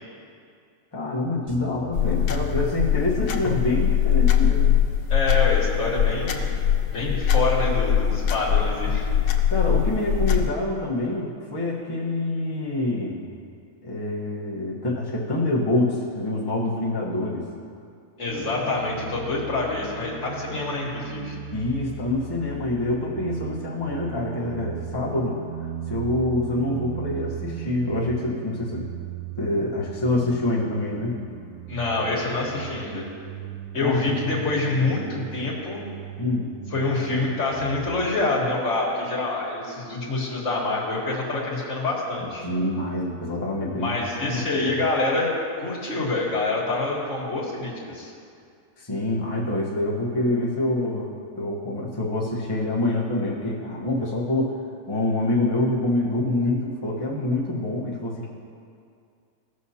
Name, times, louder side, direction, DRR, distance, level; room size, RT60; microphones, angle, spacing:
voice 1, 0.9-4.7 9.5-13.3 13.8-17.4 21.5-28.9 29.4-31.2 33.8-34.3 36.2-36.5 42.4-44.6 48.8-54.6 54.9-58.3, left 2 dB, 20° left, -5 dB, 1.0 m, -26 dB
sound 1, 1.5-5.8, left 6 dB, 25° right, 1.2 m, -47 dB
sound 2, 1.9-10.5, left 9 dB, 85° left, 1.2 m, -22 dB
voice 2, 5.1-6.5 6.9-9.1 18.2-21.4 31.7-33.1 33.7-35.8 36.7-42.4 43.8-45.3 45.6-48.1, left 2 dB, 50° left, -4 dB, 1.8 m, -26 dB
sound 3, 18.3-37.9, right 8 dB, 75° right, 1.1 m, -37 dB
16.0 x 6.3 x 2.8 m, 2.4 s
omnidirectional pair, 1.6 m